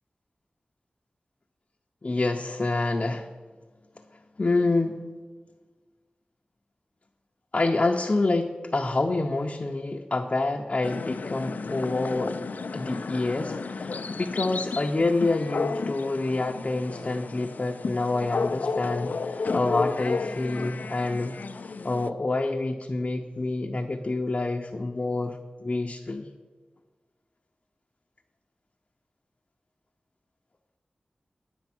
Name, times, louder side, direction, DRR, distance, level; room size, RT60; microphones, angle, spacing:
voice 1, 2.0-3.3 4.4-5.0 7.5-12.4 12.7-26.3, left 2 dB, 45° left, 2 dB, 0.7 m, -27 dB
sound 1, 10.8-22.1, left 4 dB, 80° left, 0.4 m, -33 dB
11.0 x 7.8 x 6.0 m, 1.4 s
wide cardioid pair, 70°, 3 cm